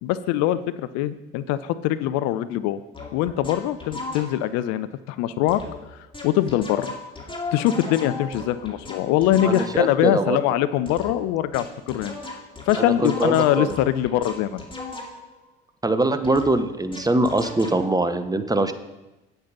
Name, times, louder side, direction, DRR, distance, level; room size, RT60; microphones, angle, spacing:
voice 1, 0.0-2.8 3.1-5.6 6.2-6.9 7.5-12.1 12.7-14.6, left 12 dB, 60° left, 14 dB, 0.5 m, -23 dB
sound 1, 2.9-4.6 5.5-5.8 6.1-10.0 10.9-15.4 16.2-17.9, left 3 dB, 15° left, 2.5 m, -35 dB
voice 2, 9.4-10.4 12.8-13.7 15.8-18.7, right 2 dB, 10° right, 10 dB, 0.9 m, -22 dB
8.7 x 8.0 x 5.4 m, 1.0 s
figure-of-eight pair, 55°, 31 cm